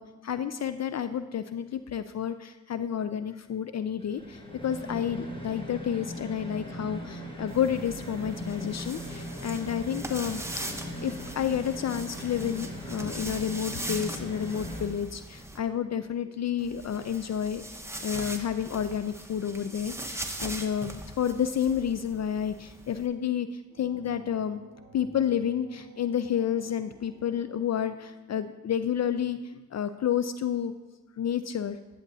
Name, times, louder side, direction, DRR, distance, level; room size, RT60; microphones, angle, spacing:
voice 1, 0.0-24.6 24.9-30.7 31.2-31.8, left 9 dB, 45° left, 12 dB, 0.4 m, -30 dB
sound 1, 4.0-14.9, equal, 15° left, 1.5 m, -39 dB
sound 2, 7.5-15.6 16.6-23.1, right 1 dB, 5° right, 0.9 m, -41 dB
sound 3, 23.7-28.2, right 3 dB, 35° right, 1.3 m, -52 dB
10.5 x 8.1 x 2.7 m, 1.2 s
supercardioid pair, 45°, 36 cm